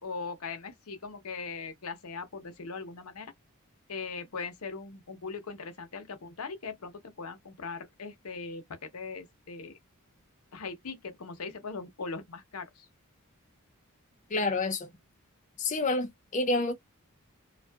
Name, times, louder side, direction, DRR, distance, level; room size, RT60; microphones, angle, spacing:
voice 1, 0.0-3.3 3.9-6.9 7.2-9.7 10.5-12.9, left 4 dB, 80° left, 0.7 m, -40 dB
voice 2, 14.3-14.9 15.6-16.7, left 2 dB, 35° left, 0.4 m, -28 dB
2.5 x 2.4 x 2.2 m
head